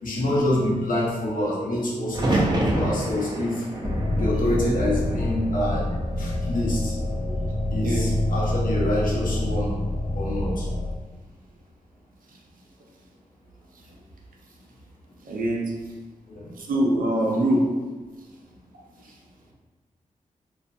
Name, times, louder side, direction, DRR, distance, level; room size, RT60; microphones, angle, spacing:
voice 1, 0.0-3.6 4.1-5.8 6.2-6.9 7.7-9.7 10.1-10.7 16.3-16.5, left 1 dB, 75° left, -5 dB, 0.8 m, -26 dB
sound 1, 2.1-6.2 6.5-7.3 9.2-9.6, right 1 dB, 30° right, 0.6 m, -28 dB
sound 2, 3.8-10.9, left 1 dB, 35° left, 0.3 m, -26 dB
voice 2, 15.2-15.6 16.6-17.7, right 1 dB, 75° right, -1 dB, 0.5 m, -23 dB
2.5 x 2.2 x 2.5 m, 1.3 s
cardioid pair, 45°, 14 cm